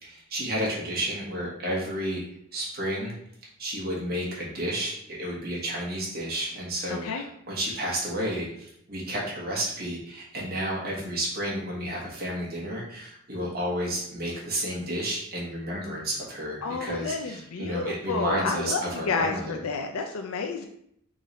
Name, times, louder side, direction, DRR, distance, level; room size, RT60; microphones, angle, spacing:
voice 1, 0.0-2.2 2.5-3.1 3.6-19.6, right 1 dB, 45° right, -4 dB, 1.3 m, -31 dB
voice 2, 6.9-7.2 16.6-20.7, left 4 dB, 85° left, 4 dB, 0.4 m, -30 dB
3.8 x 3.1 x 4.0 m, 0.71 s
head